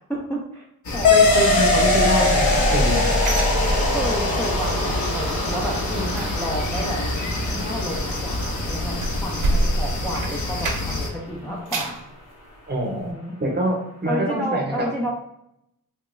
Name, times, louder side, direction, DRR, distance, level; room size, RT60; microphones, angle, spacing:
voice 1, 0.1-0.7 0.9-1.7 3.9-7.0 7.5-9.0 9.2-12.0 12.8-13.3 14.1-15.1, equal, 5° left, -4 dB, 0.4 m, -30 dB
sound 1, 0.8-11.1, left 1 dB, 55° left, 0.8 m, -26 dB
sound 2, 1.0-10.1, left 2 dB, 85° left, 0.8 m, -23 dB
voice 2, 1.1-3.1 12.7-13.1 13.4-14.9, equal, 30° right, -1 dB, 0.8 m, -25 dB
sound 3, 2.2-4.4 4.7-5.0 5.3-11.1 11.5-12.1 12.6-12.7 13.1-13.2, right 1 dB, 65° right, 0.6 m, -29 dB
3.4 x 2.2 x 3.0 m, 0.78 s
wide cardioid pair, 150°, 35 cm